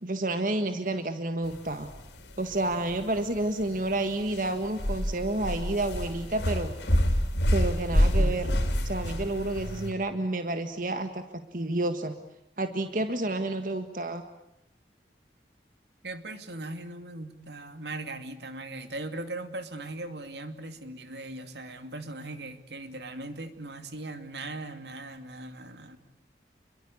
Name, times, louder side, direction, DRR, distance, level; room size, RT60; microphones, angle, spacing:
voice 1, 0.0-1.9 2.4-6.7 7.5-8.5 8.8-12.1 12.6-14.2, right 2 dB, 50° right, 8 dB, 1.6 m, -30 dB
sound 1, 1.5-9.9, equal, 85° left, 4.6 m, -28 dB
voice 2, 16.0-26.0, right 2 dB, 80° right, 8 dB, 2.6 m, -39 dB
29.5 x 22.5 x 8.6 m, 0.80 s
head